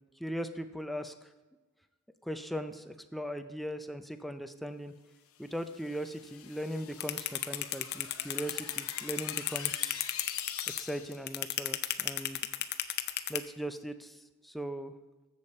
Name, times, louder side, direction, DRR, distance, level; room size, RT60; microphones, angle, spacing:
voice 1, 0.2-1.1 2.2-4.9 5.4-10.0 10.8-12.4 13.3-14.2 14.4-14.9, equal, ahead, 8 dB, 0.5 m, -39 dB
sound 1, 5.4-11.3, left 8 dB, 80° left, 0.9 m, -45 dB
sound 2, 7.0-13.4, left 13 dB, 50° left, 0.6 m, -32 dB
13.0 x 7.2 x 4.3 m, 1.2 s
head